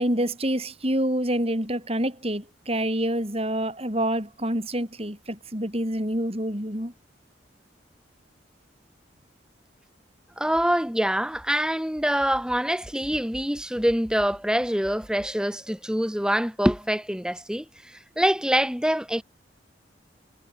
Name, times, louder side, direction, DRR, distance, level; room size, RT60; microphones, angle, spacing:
voice 1, 0.0-6.9, right 1 dB, 30° right, 7.3 m, -27 dB
voice 2, 10.4-19.2, equal, 5° right, 1.7 m, -25 dB
head